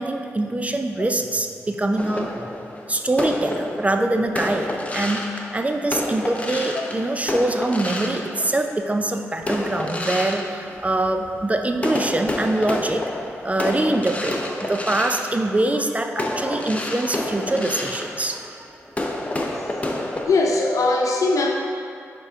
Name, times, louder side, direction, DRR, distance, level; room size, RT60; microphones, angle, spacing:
voice 1, 0.0-2.5 2.9-5.3 5.5-13.0 13.4-18.7, right 2 dB, 25° right, 5 dB, 0.4 m, -24 dB
sound 1, 2.0-8.9 9.4-11.4 11.8-20.3, left 1 dB, 25° left, 0.8 m, -29 dB
voice 2, 20.2-21.5, left 3 dB, 70° left, 0 dB, 0.8 m, -20 dB
9.9 x 3.6 x 2.8 m, 2.3 s
supercardioid pair, 45°, 6 cm